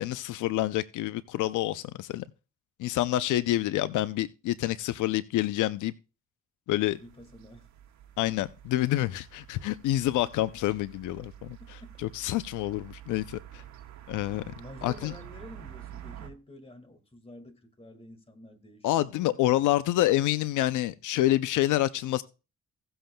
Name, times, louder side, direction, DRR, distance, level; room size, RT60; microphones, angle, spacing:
voice 1, 0.0-2.2 2.8-5.9 6.7-7.0 8.2-11.6 12.0-13.6 14.1-14.5 14.8-15.1 18.8-22.2, left 15 dB, 80° left, 0.5 m, -27 dB
voice 2, 6.9-7.7 10.0-10.3 11.6-11.9 14.6-19.7, left 1 dB, 20° left, 1.9 m, -49 dB
sound 1, 6.9-16.3, right 11 dB, 65° right, 1.4 m, -48 dB
17.0 x 7.8 x 2.2 m
cardioid pair, 90°, 30 cm